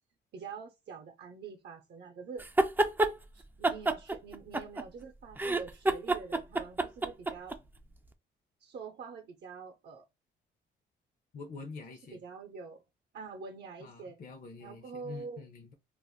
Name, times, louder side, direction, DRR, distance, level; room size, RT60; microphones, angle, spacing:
voice 1, 0.3-2.4 3.3-7.6 8.6-10.0 12.1-12.8 13.1-14.2 14.6-15.5, right 5 dB, 60° right, 0.6 m, -45 dB
sound 1, 2.4-3.1 3.6-5.0 5.4-7.6, right 2 dB, 10° right, 0.3 m, -28 dB
voice 2, 11.3-12.2 13.8-15.7, left 4 dB, 45° left, 0.6 m, -46 dB
2.4 x 2.1 x 3.5 m
cardioid pair, 90°, 20 cm